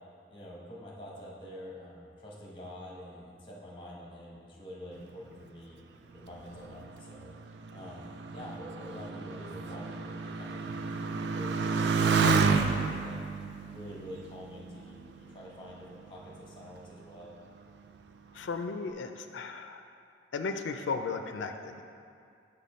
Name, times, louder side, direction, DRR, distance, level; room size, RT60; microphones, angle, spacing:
voice 1, 0.3-5.8 6.1-7.3 7.7-13.2 13.7-17.3, equal, 25° left, -4 dB, 1.1 m, -46 dB
Motorcycle, 6.3-15.3 16.1-16.6, right 4 dB, 70° right, 0.3 m, -31 dB
voice 2, 18.3-19.8 20.3-21.8, left 4 dB, 90° left, 6 dB, 0.4 m, -35 dB
5.6 x 5.5 x 4.2 m, 2.4 s
head